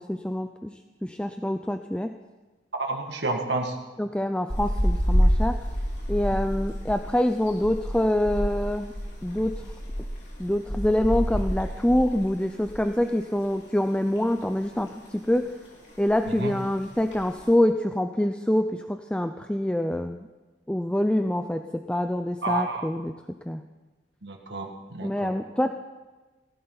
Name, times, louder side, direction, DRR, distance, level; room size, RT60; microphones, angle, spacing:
voice 1, 0.0-2.1 4.0-5.6 6.1-8.9 9.2-9.6 10.4-15.6 16.0-20.3 20.7-23.1 23.5-23.6 25.0-25.7, left 1 dB, 5° left, 7 dB, 0.5 m, -26 dB
voice 2, 2.7-3.8 6.3-6.4 16.3-16.6 22.4-22.9 24.2-25.3, right 3 dB, 70° right, 2 dB, 1.9 m, -30 dB
sound 1, 4.5-13.0 13.3-13.5 13.9-14.7 15.0-15.4 15.7-15.8 15.9-16.4 16.9-17.4, equal, 70° left, 4.4 m, -28 dB
18.0 x 15.5 x 4.0 m, 1.2 s
head